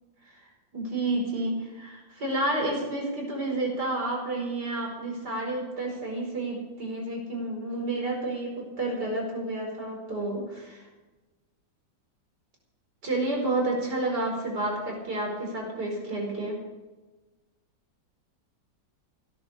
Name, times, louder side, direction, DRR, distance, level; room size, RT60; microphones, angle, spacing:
voice 1, 0.4-10.8 13.0-16.6, right 2 dB, 60° right, 0 dB, 5.5 m, -30 dB
17.0 x 10.5 x 6.7 m, 1.2 s
omnidirectional pair, 2.0 m